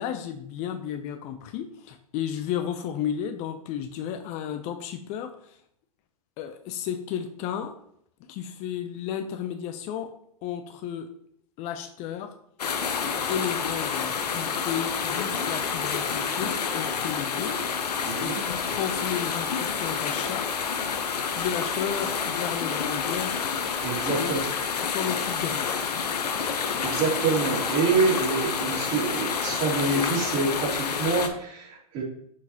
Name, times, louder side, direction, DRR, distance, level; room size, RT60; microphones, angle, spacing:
voice 1, 0.0-5.6 6.4-7.8 8.2-10.1 10.4-11.1 11.6-12.3 13.3-17.6 18.2-20.5 21.3-23.4 24.2-24.3 24.8-25.7, left 9 dB, 35° left, 8 dB, 0.5 m, -33 dB
sound 1, 12.6-31.3, left 6 dB, 80° left, 0.8 m, -29 dB
voice 2, 18.0-18.4 23.8-24.4 26.8-32.0, right 4 dB, 40° right, -3 dB, 2.7 m, -26 dB
6.4 x 6.0 x 2.8 m, 0.69 s
hypercardioid pair, 115°, 20 cm